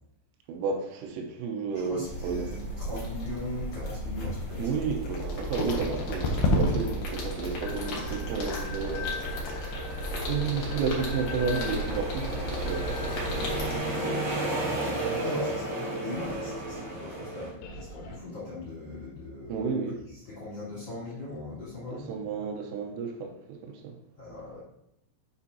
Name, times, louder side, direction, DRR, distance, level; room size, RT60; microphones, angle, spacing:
voice 1, 0.5-2.5 4.6-9.1 10.3-13.2 13.9-14.3 15.0-15.5 19.5-20.0 21.9-24.0, right 5 dB, 85° right, 3 dB, 3.5 m, -32 dB
voice 2, 1.7-4.8 13.6-14.1 15.0-19.7 20.2-22.1 22.4-22.5 24.2-24.6, left 2 dB, 40° left, -10 dB, 2.6 m, -40 dB
sound 1, 1.7-17.5, right 1 dB, 30° right, 3.3 m, -36 dB
sound 2, 2.0-13.8, equal, 60° left, 2.7 m, -35 dB
sound 3, 5.3-16.2 16.4-16.8 17.2-18.2, left 2 dB, 80° left, 2.4 m, -35 dB
8.2 x 6.9 x 2.8 m, 0.77 s
omnidirectional pair, 5.9 m